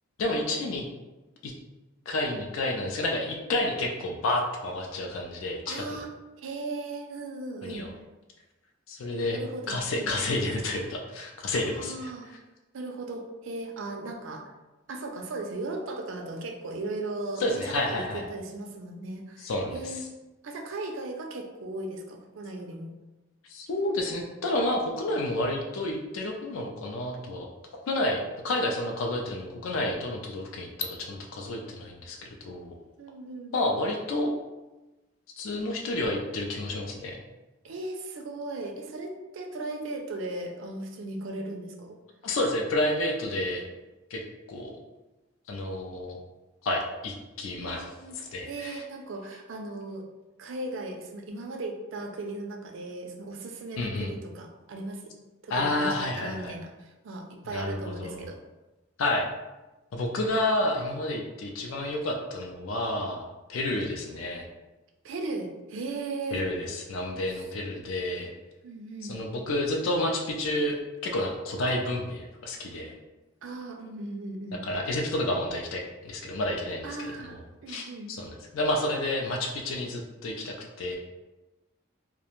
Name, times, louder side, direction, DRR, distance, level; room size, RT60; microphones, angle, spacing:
voice 1, 0.2-0.9 1.4-1.5 2.1-6.0 7.6-7.9 8.9-9.4 9.7-12.1 17.4-18.2 19.4-20.0 23.5-27.5 27.9-32.7 33.5-34.3 35.4-37.2 42.2-43.6 44.1-44.2 44.5-44.8 45.5-46.2 46.6-48.8 53.8-54.1 55.5-56.5 57.5-58.3 59.0-59.3 59.9-64.5 66.3-68.3 69.0-70.8 71.0-73.0 74.6-77.3 77.7-81.0, left 1 dB, 85° left, 1 dB, 0.4 m, -30 dB
voice 2, 5.7-6.1 6.4-7.9 9.3-10.3 11.5-12.3 12.7-14.5 14.9-20.0 20.4-22.9 33.0-33.7 37.6-42.0 47.6-48.2 48.5-50.0 50.4-55.1 55.4-58.4 65.0-66.5 68.6-69.1 73.4-74.6 76.8-78.1, right 2 dB, 75° right, 3 dB, 0.4 m, -37 dB
2.4 x 2.1 x 2.9 m, 1.1 s
head